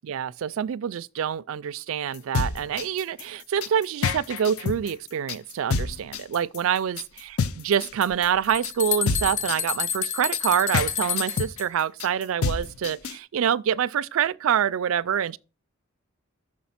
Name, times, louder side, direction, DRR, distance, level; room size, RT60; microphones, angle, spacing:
voice 1, 0.0-15.4, right 8 dB, 70° right, 0.4 m, -26 dB
sound 1, 2.1-13.2, left 5 dB, 85° left, 0.5 m, -28 dB
sound 2, 8.1-11.6, left 7 dB, 35° left, 0.4 m, -29 dB
6.3 x 5.2 x 5.6 m
head